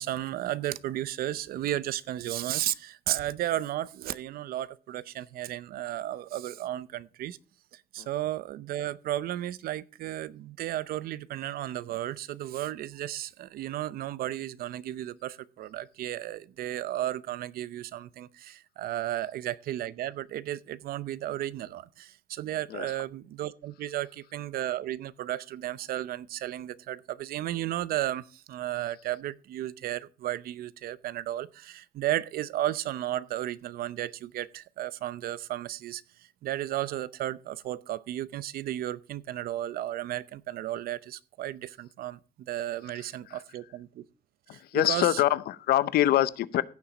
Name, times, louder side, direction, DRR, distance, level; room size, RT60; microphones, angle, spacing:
voice 1, 0.0-7.4 7.9-36.0 36.4-42.2 42.5-44.0 44.7-45.2, right 13 dB, 65° right, 0.7 m, -34 dB
voice 2, 44.5-46.6, left 13 dB, 75° left, 0.7 m, -25 dB
16.0 x 7.2 x 5.0 m
cardioid pair, 180°, 16 cm